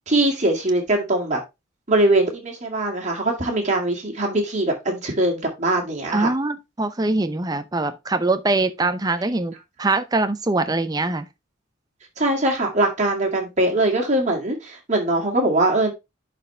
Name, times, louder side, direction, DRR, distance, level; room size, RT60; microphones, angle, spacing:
voice 1, 0.1-1.4 1.9-6.3 12.2-15.9, right 2 dB, 35° right, 2.1 m, -21 dB
voice 2, 6.1-11.3, right 2 dB, 20° right, 0.6 m, -23 dB
10.5 x 4.3 x 3.2 m
head